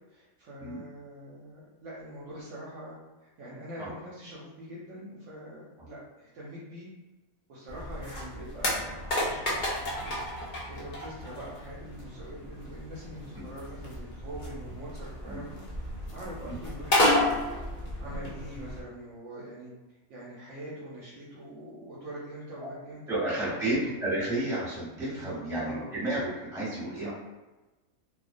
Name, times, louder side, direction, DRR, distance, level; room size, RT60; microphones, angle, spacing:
voice 1, 0.1-3.0 3.4-6.9 7.5-17.6 18.0-19.7 20.1-23.6 25.0-25.9 26.9-27.1, right 1 dB, 65° right, -7 dB, 0.8 m, -44 dB
sound 1, 7.7-18.8, left 1 dB, 90° left, 0.4 m, -32 dB
voice 2, 23.1-27.1, right 1 dB, 5° right, -10 dB, 0.8 m, -31 dB
2.4 x 2.1 x 2.5 m, 1.1 s
omnidirectional pair, 1.5 m